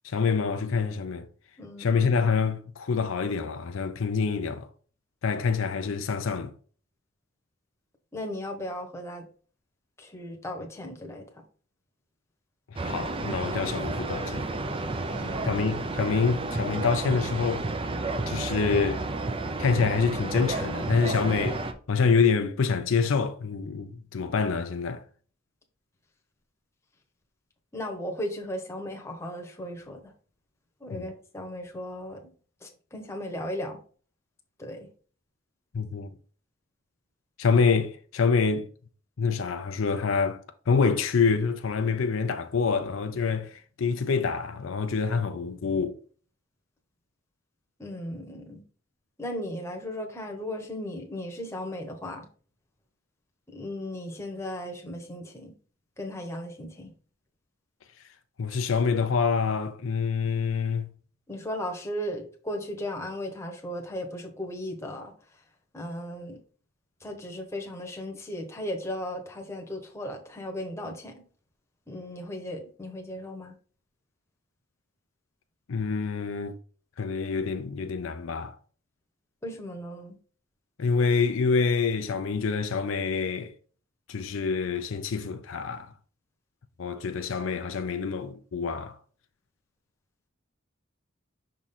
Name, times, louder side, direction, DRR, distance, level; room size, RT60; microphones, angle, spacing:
voice 1, 0.0-1.3 1.8-4.7 5.2-6.5 12.7-14.5 15.4-17.7 18.3-19.0 19.6-21.6 21.9-25.0 30.9-31.1 35.7-36.1 37.4-38.7 39.2-46.0 58.4-60.9 75.7-76.6 77.0-78.5 80.8-83.5 84.1-85.9 86.8-89.0, left 5 dB, 75° left, 0.5 m, -26 dB
voice 2, 1.6-1.9 8.1-9.3 10.0-11.3 15.1-15.5 27.7-30.0 30.8-32.3 32.6-33.8 34.6-34.9 47.8-48.6 49.2-52.3 53.5-55.5 56.0-56.9 61.3-65.1 65.7-66.4 67.0-71.2 71.9-73.5 79.4-80.2, left 1 dB, 15° left, 1.0 m, -36 dB
sound 1, 12.8-21.7, right 2 dB, 25° right, 0.5 m, -31 dB
6.0 x 3.7 x 4.2 m
head